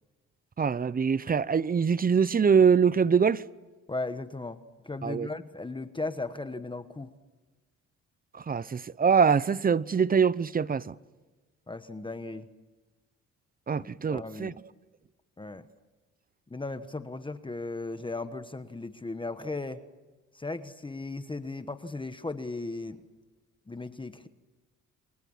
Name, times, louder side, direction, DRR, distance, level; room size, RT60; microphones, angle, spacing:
voice 1, 0.6-3.4 5.0-5.3 8.3-10.9 13.7-14.5, right 6 dB, 30° right, 0.8 m, -24 dB
voice 2, 3.9-7.1 11.7-12.5 13.7-14.6 15.4-15.6 16.5-19.8 20.3-23.0 23.7-24.3, left 3 dB, 15° left, 1.3 m, -36 dB
29.5 x 23.5 x 7.3 m
cardioid pair, 90°, 30 cm